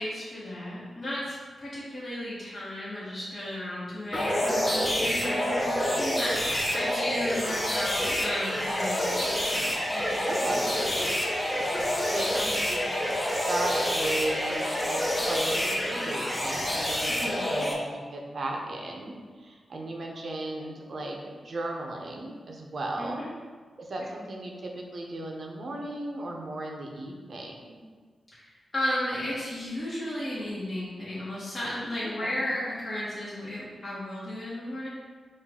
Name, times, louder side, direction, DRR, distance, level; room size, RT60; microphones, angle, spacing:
voice 1, 0.0-10.7 17.1-17.7 23.0-23.3 28.3-34.9, left 1 dB, 35° left, -9 dB, 1.1 m, -34 dB
sound 1, 4.1-17.7, equal, 10° left, 0.6 m, -28 dB
voice 2, 5.1-5.5 10.3-10.6 12.1-13.2 13.5-15.0 15.3-23.2 23.8-27.8 32.0-32.3, right 2 dB, 50° right, 0 dB, 0.6 m, -35 dB
5.1 x 2.4 x 3.6 m, 1.5 s
wide cardioid pair, 125°, 0 cm